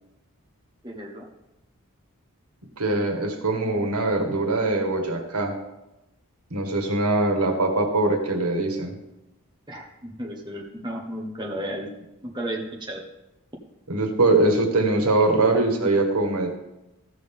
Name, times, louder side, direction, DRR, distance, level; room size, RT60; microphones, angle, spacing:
voice 1, 0.8-1.2 9.7-11.9 12.2-13.0, right 1 dB, 20° right, -1 dB, 1.2 m, -33 dB
voice 2, 2.8-5.5 6.5-9.0 13.9-16.5, right 2 dB, 85° right, 3 dB, 1.6 m, -22 dB
15.0 x 6.3 x 3.7 m, 0.94 s
head